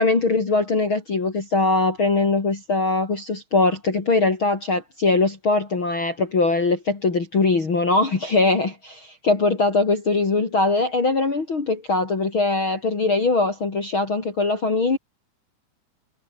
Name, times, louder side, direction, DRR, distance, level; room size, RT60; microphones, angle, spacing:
voice 1, 0.0-15.0, left 3 dB, 35° left, 3.9 m, -21 dB
omnidirectional pair, 4.3 m